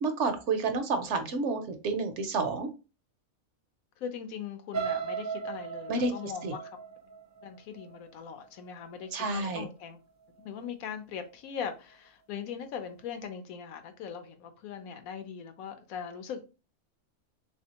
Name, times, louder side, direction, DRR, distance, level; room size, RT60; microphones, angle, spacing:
voice 1, 0.0-2.7 5.9-6.5 9.1-9.6, right 3 dB, 65° right, 0.8 m, -30 dB
voice 2, 4.0-6.7 7.4-10.0 10.4-16.4, left 7 dB, 85° left, 1.1 m, -40 dB
sound 1, 4.7-8.7 9.2-9.5 9.8-9.9, right 6 dB, 25° right, 0.4 m, -37 dB
3.4 x 2.7 x 2.8 m
omnidirectional pair, 1.5 m